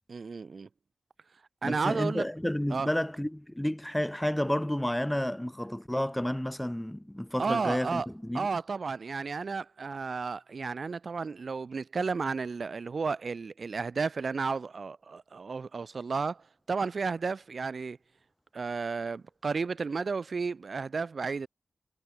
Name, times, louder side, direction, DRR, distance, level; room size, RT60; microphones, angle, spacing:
voice 1, 0.1-0.7 1.6-2.2 2.7-2.9 7.4-8.1 8.3-18.0 18.5-21.5, right 4 dB, 50° right, 1.5 m, -32 dB
voice 2, 1.6-8.5, left 1 dB, 5° left, 5.1 m, -31 dB
wide cardioid pair, 170°, 0 cm